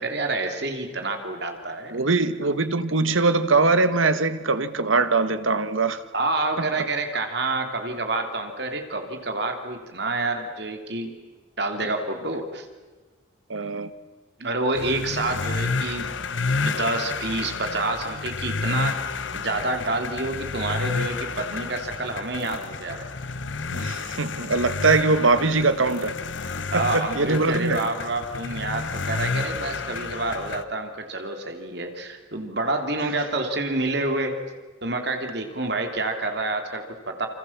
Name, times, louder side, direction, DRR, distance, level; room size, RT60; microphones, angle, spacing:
voice 1, 0.0-2.0 6.1-11.1 11.6-12.7 14.4-16.2 16.6-19.0 19.3-23.1 26.7-34.4 34.8-37.3, right 2 dB, 55° right, 5 dB, 3.1 m, -28 dB
voice 2, 1.9-6.0 13.5-13.9 23.7-26.2 26.7-27.8, right 3 dB, 85° right, 12 dB, 1.5 m, -22 dB
sound 1, 14.7-30.6, left 4 dB, 70° left, 1.1 m, -30 dB
28.0 x 26.0 x 7.3 m, 1.3 s
head